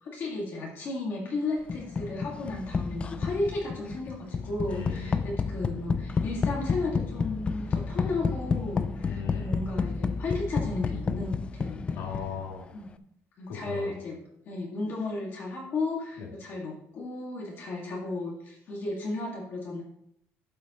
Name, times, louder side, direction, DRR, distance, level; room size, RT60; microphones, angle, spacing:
voice 1, 0.0-12.0 12.7-12.8 13.4-14.2 14.5-19.8, left 2 dB, 45° left, -2 dB, 2.0 m, -34 dB
sound 1, 1.7-12.6, left 5 dB, 20° left, 0.3 m, -31 dB
voice 2, 4.7-5.3 9.0-9.6 11.9-12.7 13.5-13.9 16.2-16.3, left 6 dB, 75° left, 0 dB, 2.6 m, -38 dB
12.0 x 7.3 x 3.0 m, 0.74 s
cardioid pair, 170°, 5 cm